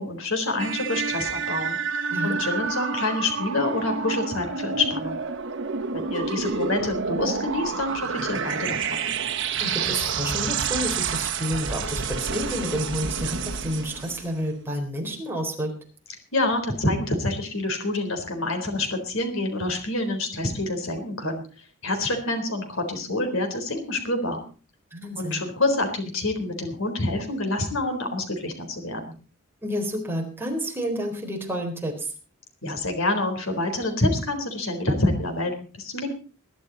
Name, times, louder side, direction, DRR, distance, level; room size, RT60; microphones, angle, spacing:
voice 1, 0.0-5.2 5.9-9.1 16.3-21.4 21.8-24.4 25.2-29.1 32.6-36.1, left 2 dB, 70° left, 5 dB, 4.0 m, -27 dB
sound 1, 0.6-14.3, right 5 dB, 60° right, 1.6 m, -29 dB
voice 2, 9.6-15.7 24.9-25.4 29.6-32.1, equal, 10° right, 1 dB, 4.1 m, -30 dB
21.0 x 11.5 x 4.1 m, 0.36 s
head